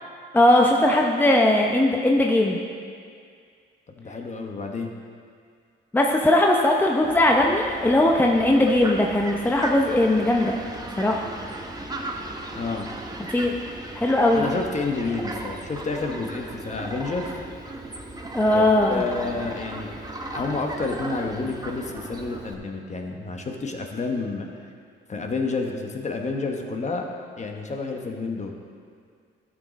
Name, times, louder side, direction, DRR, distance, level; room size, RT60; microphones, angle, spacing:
voice 1, 0.3-2.6 5.9-10.6 11.0-11.2 13.3-13.5 13.9-14.4 18.3-19.0, left 1 dB, 10° left, 0 dB, 0.7 m, -19 dB
voice 2, 4.0-4.9 12.5-12.9 14.3-17.3 18.5-18.6 18.9-19.9 20.3-24.5 25.1-27.1 27.4-28.5, left 3 dB, 35° left, 2 dB, 1.1 m, -29 dB
Fowl, 7.0-22.5, right 1 dB, 20° right, 1.0 m, -36 dB
12.5 x 6.4 x 4.1 m, 2.2 s
cardioid pair, 90°, 20 cm